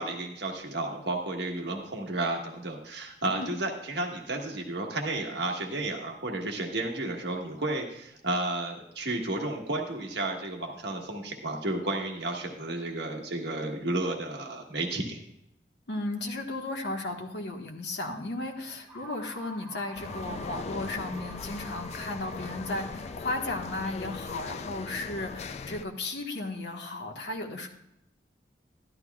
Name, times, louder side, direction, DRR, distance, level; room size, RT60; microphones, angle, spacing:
voice 1, 0.0-15.2, right 2 dB, 65° right, 1 dB, 1.4 m, -32 dB
voice 2, 15.9-27.7, left 2 dB, 70° left, 2 dB, 1.5 m, -35 dB
sound 1, 18.9-26.7, equal, 25° right, 3.2 m, -49 dB
sound 2, 20.0-25.9, left 4 dB, 35° left, 0.3 m, -39 dB
12.5 x 11.5 x 2.3 m, 0.77 s
head